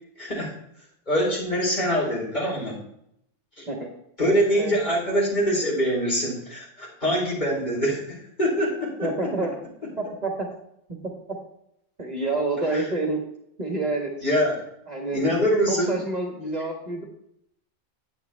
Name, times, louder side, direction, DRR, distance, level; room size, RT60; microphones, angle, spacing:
voice 1, 0.2-0.5 1.1-2.8 3.6-3.7 4.2-9.3 12.7-12.8 14.2-14.5 15.1-16.0, equal, 35° left, -4 dB, 4.3 m, -24 dB
voice 2, 9.0-9.5 10.0-10.3 12.0-13.2 13.6-14.1 14.9-15.3 15.7-17.0, right 2 dB, 35° right, 0 dB, 1.6 m, -28 dB
10.5 x 8.8 x 3.5 m, 0.75 s
omnidirectional pair, 1.3 m